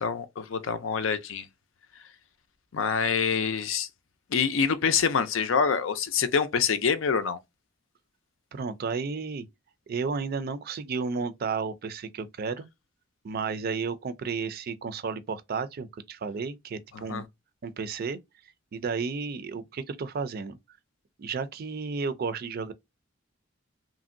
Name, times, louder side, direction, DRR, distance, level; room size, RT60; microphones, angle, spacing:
voice 1, 0.0-1.5 2.7-3.9 4.3-7.4 16.9-17.2, left 6 dB, 80° left, 0.5 m, -26 dB
voice 2, 8.5-9.5 9.9-12.7 13.2-17.2 17.6-18.2 18.7-20.6 21.2-22.7, right 5 dB, 50° right, 0.4 m, -32 dB
3.0 x 2.6 x 2.5 m
head